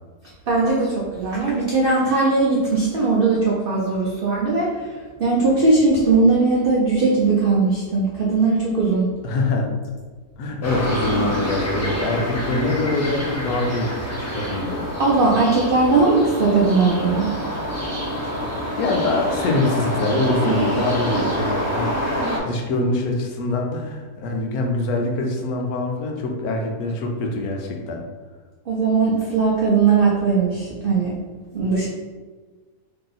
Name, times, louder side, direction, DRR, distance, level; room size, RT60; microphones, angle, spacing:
voice 1, 0.5-4.9 5.2-9.1 15.0-17.3 18.1-18.2 20.4-20.9 28.7-31.1 31.5-31.9, right 3 dB, 75° right, -4 dB, 0.5 m, -19 dB
voice 2, 9.2-9.7 10.4-14.8 18.8-22.0 22.4-28.0, left 2 dB, 75° left, 2 dB, 1.1 m, -24 dB
sound 1, 10.6-22.4, equal, 25° left, 0.3 m, -26 dB
2.9 x 2.8 x 3.8 m, 1.4 s
omnidirectional pair, 1.7 m